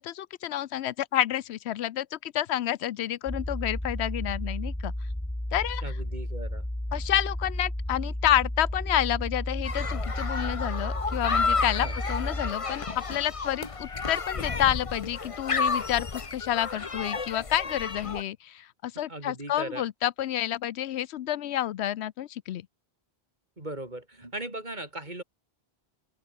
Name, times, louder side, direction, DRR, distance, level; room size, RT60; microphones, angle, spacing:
voice 1, 0.0-4.9 5.5-5.8 6.9-22.6, left 12 dB, 85° left, 0.9 m, -29 dB
sound 1, 3.3-12.5, left 1 dB, 10° left, 1.6 m, -33 dB
voice 2, 5.8-6.6 11.8-12.0 18.9-19.8 23.6-25.2, right 1 dB, 45° right, 4.6 m, -38 dB
sound 2, 9.7-18.2, left 4 dB, 30° left, 1.0 m, -31 dB
open air
omnidirectional pair, 1.1 m